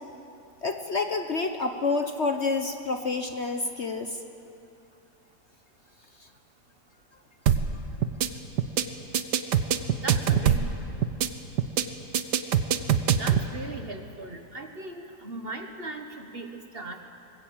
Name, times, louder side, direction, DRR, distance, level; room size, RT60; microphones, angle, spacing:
voice 1, 0.6-4.2, left 3 dB, 45° left, 6 dB, 1.2 m, -28 dB
sound 1, 7.5-7.7 8.0-8.3 8.6-8.8 9.1-10.7 11.0-11.3 11.6-11.8 12.1-13.4, right 9 dB, 75° right, 1.5 m, -23 dB
voice 2, 10.0-10.6 13.1-17.0, right 2 dB, 35° right, 5 dB, 1.4 m, -38 dB
23.0 x 20.0 x 8.7 m, 2.7 s
omnidirectional pair, 1.9 m